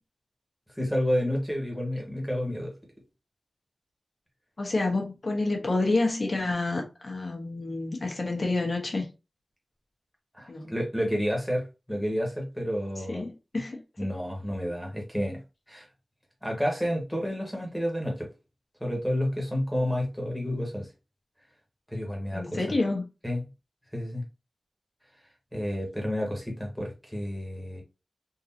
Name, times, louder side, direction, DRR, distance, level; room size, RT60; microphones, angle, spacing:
voice 1, 0.7-2.7 10.3-13.2 14.0-15.4 15.7-15.9 16.4-18.3 18.8-20.9 21.9-22.6 23.2-23.4 23.9-24.2 25.5-27.8, equal, ahead, 1.5 m, -30 dB
voice 2, 4.6-9.1 10.5-10.7 13.1-13.8 22.3-23.0, left 2 dB, 55° left, 1.2 m, -28 dB
3.8 x 2.7 x 2.8 m
wide cardioid pair, 95°, 0 cm